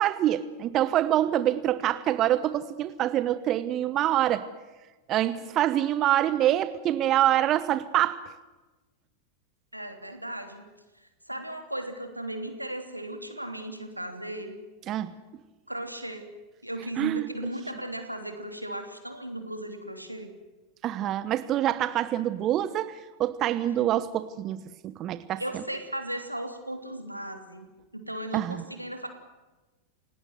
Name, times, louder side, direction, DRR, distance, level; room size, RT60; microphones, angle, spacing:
voice 1, 0.0-4.4 5.1-8.2 14.9-15.1 17.0-17.2 20.8-25.6 28.3-28.6, right 12 dB, 35° right, 14 dB, 1.0 m, -26 dB
voice 2, 9.7-10.6 10.9-14.6 15.7-16.3 16.6-20.3 25.4-27.6 27.9-29.1, right 1 dB, 90° right, 6 dB, 3.1 m, -36 dB
28.5 x 18.5 x 8.0 m, 1.2 s
figure-of-eight pair, 90°, 0 cm